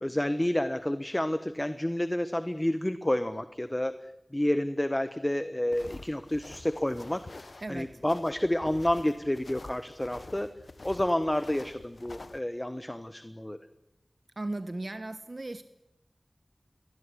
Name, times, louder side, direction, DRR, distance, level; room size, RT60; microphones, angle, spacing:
voice 1, 0.0-7.4 7.7-10.5 10.8-13.6, left 1 dB, 20° left, 12 dB, 1.2 m, -30 dB
sound 1, 5.7-12.4, left 3 dB, 70° left, 1.0 m, -48 dB
voice 2, 14.4-15.6, right 2 dB, 50° right, 11 dB, 1.2 m, -36 dB
23.0 x 19.5 x 9.9 m, 0.89 s
wide cardioid pair, 60°, 0 cm